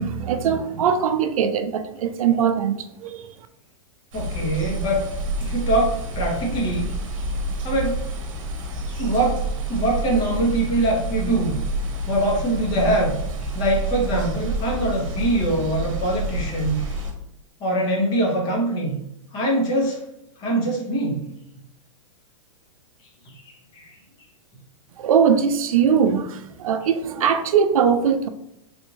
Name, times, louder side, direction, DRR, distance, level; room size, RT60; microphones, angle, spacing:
voice 1, 0.0-3.3 25.0-28.3, right 7 dB, 80° right, 9 dB, 0.4 m, -21 dB
voice 2, 4.1-5.0 5.4-6.9 7.6-8.0 8.9-11.6 12.1-13.2 13.4-17.0 17.6-19.0 19.3-20.0 20.4-21.2 23.3-23.9, right 1 dB, 25° left, -1 dB, 1.1 m, -23 dB
sound 1, 4.1-17.1, right 2 dB, 65° right, 0.9 m, -28 dB
3.4 x 2.6 x 3.0 m, 0.81 s
hypercardioid pair, 145°, 17 cm